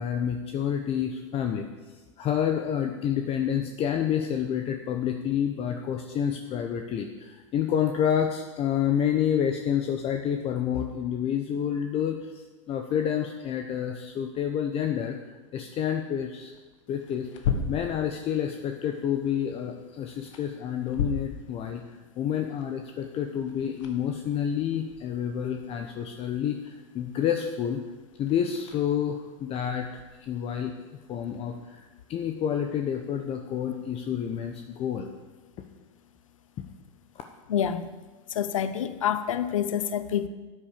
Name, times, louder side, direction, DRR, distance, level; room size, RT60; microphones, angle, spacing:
voice 1, 0.0-1.7 2.2-15.2 15.5-16.5 16.9-17.3 17.7-27.8 28.2-29.9 30.2-30.7 31.1-35.1, left 9 dB, 35° left, 5 dB, 1.0 m, -29 dB
sound 1, 14.7-31.9, left 6 dB, 75° left, 1.8 m, -39 dB
voice 2, 37.5-37.9 38.3-40.3, left 9 dB, 90° left, 12 dB, 0.7 m, -27 dB
10.5 x 9.1 x 6.8 m, 1.2 s
hypercardioid pair, 110°, 16 cm